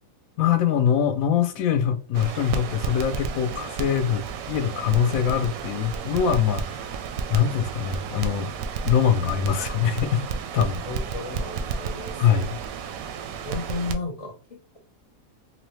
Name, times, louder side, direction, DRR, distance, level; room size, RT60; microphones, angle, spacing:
voice 1, 0.4-7.0 7.3-8.5 8.8-10.2 10.5-10.8 12.2-12.6, left 8 dB, 70° left, 0.9 m, -23 dB
Crackle, 2.1-13.9, right 6 dB, 70° right, 0.9 m, -32 dB
voice 2, 10.6-12.4 13.0-14.8, left 3 dB, 40° left, 0.5 m, -35 dB
3.9 x 2.7 x 3.0 m
omnidirectional pair, 1.7 m